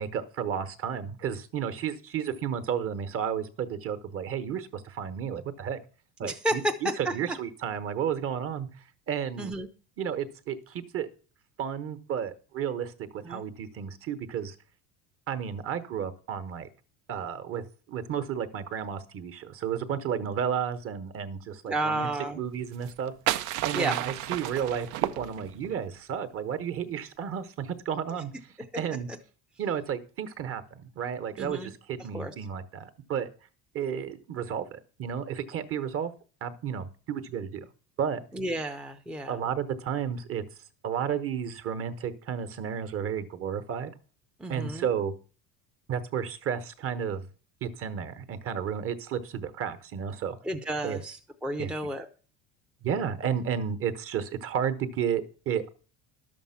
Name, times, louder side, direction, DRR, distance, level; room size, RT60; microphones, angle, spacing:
voice 1, 0.0-5.8 6.2-8.7 9.1-9.5 10.0-11.1 11.6-14.5 15.3-16.7 17.1-22.1 22.3-23.1 23.6-28.3 28.7-29.1 29.6-33.3 33.7-36.1 36.4-37.7 38.0-38.2 39.3-40.4 40.8-43.9 44.5-45.1 45.9-47.3 47.6-50.4 50.8-51.0 51.6-51.7 52.8-55.7, right 8 dB, 40° right, 12 dB, 1.1 m, -32 dB
voice 2, 6.2-7.2 9.4-9.7 13.2-13.4 21.7-22.4 23.7-24.0 31.4-31.7 32.1-32.3 38.3-39.4 44.4-44.9 50.4-52.1, right 1 dB, 5° right, 5 dB, 0.6 m, -31 dB
sound 1, 22.7-25.8, right 14 dB, 60° right, 0.7 m, -32 dB
11.5 x 7.1 x 5.7 m, 0.38 s
cardioid pair, 160°, 34 cm